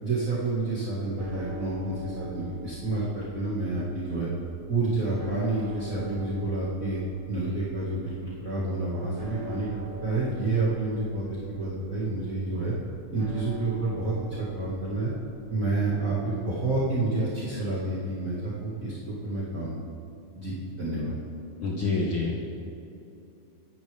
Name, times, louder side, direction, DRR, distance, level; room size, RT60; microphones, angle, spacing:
voice 1, 0.0-4.3 4.7-7.0 7.3-8.1 8.4-9.7 10.0-12.7 13.1-15.1 15.5-19.7 20.3-21.2, right 2 dB, 35° right, -8 dB, 1.4 m, -29 dB
sound 1, 1.2-19.4, left 2 dB, 20° right, 1.0 m, -45 dB
voice 2, 21.6-22.4, left 3 dB, 70° left, -3 dB, 1.3 m, -27 dB
23.5 x 10.5 x 3.4 m, 2.9 s
omnidirectional pair, 4.2 m